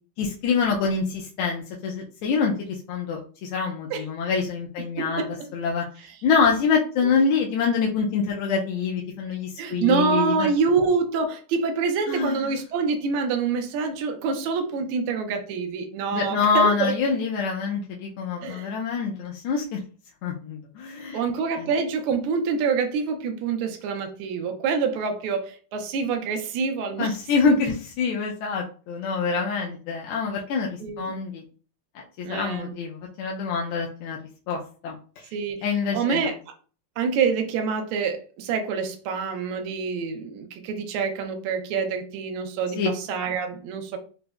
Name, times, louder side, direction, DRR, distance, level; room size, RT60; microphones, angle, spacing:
voice 1, 0.2-2.5 2.9-5.2 5.5-5.8 6.2-10.5 12.1-12.5 16.1-19.8 20.2-21.2 21.6-21.7 27.0-31.4 32.2-34.2 34.5-35.0 35.6-36.3 42.8-42.9, left 5 dB, 80° left, 0 dB, 1.4 m, -25 dB
voice 2, 5.0-5.5 7.0-7.1 9.6-16.9 18.4-18.7 21.1-27.1 30.8-31.1 32.2-32.7 35.3-35.6 35.9-36.4 37.0-44.0, right 5 dB, 80° right, 4 dB, 1.5 m, -26 dB
5.0 x 2.0 x 2.3 m, 0.38 s
omnidirectional pair, 2.4 m